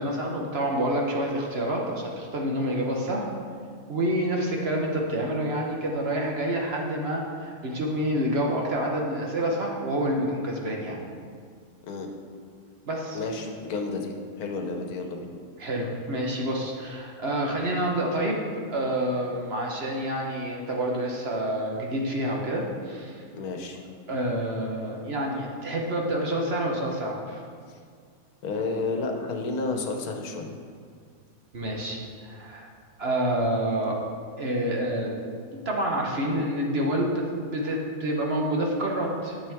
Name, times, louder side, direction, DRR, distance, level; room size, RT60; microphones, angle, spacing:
voice 1, 0.0-3.3 3.9-11.0 12.8-13.2 15.6-18.4 18.7-23.2 24.1-27.4 31.5-32.7 33.0-34.0 34.4-35.3 35.6-39.5, right 1 dB, 45° right, -1 dB, 1.2 m, -28 dB
voice 2, 13.1-15.3 23.3-23.8 27.7-27.8 28.4-30.5, left 3 dB, 80° left, 3 dB, 1.4 m, -31 dB
10.5 x 7.2 x 3.5 m, 2.1 s
omnidirectional pair, 1.6 m